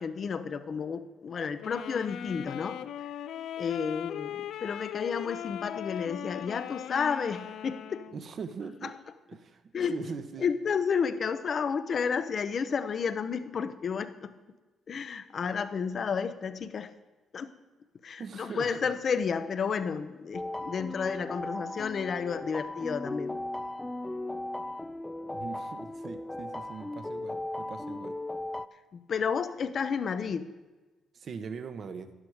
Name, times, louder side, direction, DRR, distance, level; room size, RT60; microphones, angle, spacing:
voice 1, 0.0-2.8 3.6-8.1 8.8-8.9 9.7-9.9 10.4-14.4 14.9-16.9 17.3-17.5 18.0-23.4 28.9-30.5, left 6 dB, 50° left, 12 dB, 0.8 m, -31 dB
sound 1, 1.6-8.2, left 10 dB, 75° left, 0.4 m, -39 dB
voice 2, 8.1-8.9 9.3-9.6 9.9-10.5 18.2-18.9 25.2-28.2 31.1-32.1, right 5 dB, 55° right, 10 dB, 1.0 m, -41 dB
sound 2, 20.3-28.7, left 1 dB, 10° left, 0.5 m, -37 dB
11.5 x 11.0 x 5.0 m, 1.2 s
cardioid pair, 90°, 0 cm